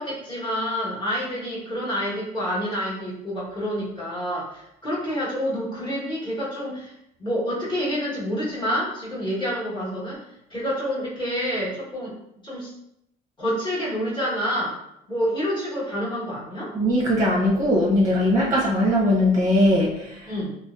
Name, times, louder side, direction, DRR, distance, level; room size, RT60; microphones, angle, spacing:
voice 1, 0.0-6.9 7.2-10.2 10.5-12.1 12.4-12.7 13.4-14.8 15.1-16.7 20.3-20.5, equal, 25° left, -7 dB, 1.2 m, -28 dB
voice 2, 16.7-20.3, left 1 dB, 15° right, -3 dB, 0.7 m, -20 dB
2.6 x 2.1 x 2.4 m, 0.80 s
cardioid pair, 110°, 17 cm